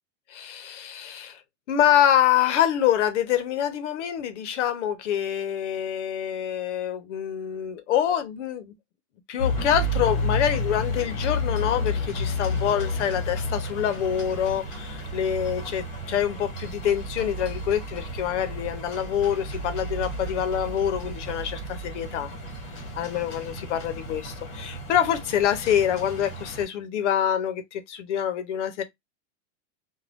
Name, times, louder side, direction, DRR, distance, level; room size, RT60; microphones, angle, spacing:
voice 1, 0.3-1.4 1.7-8.7 9.3-22.3 23.0-28.8, left 10 dB, 60° left, 0.7 m, -26 dB
sound 1, 9.4-26.6, left 1 dB, 30° left, 0.9 m, -31 dB
2.4 x 2.2 x 3.3 m
supercardioid pair, 175°, 39 cm